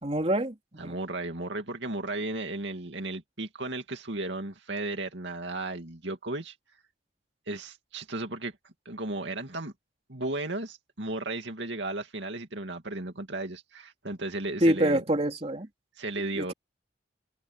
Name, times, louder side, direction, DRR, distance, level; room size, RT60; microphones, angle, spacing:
voice 1, 0.0-0.9 14.6-15.7 16.3-16.5, right 1 dB, 30° right, 3.0 m, -26 dB
voice 2, 0.8-6.6 7.5-9.7 10.1-15.0 16.0-16.5, right 2 dB, 65° right, 2.5 m, -35 dB
head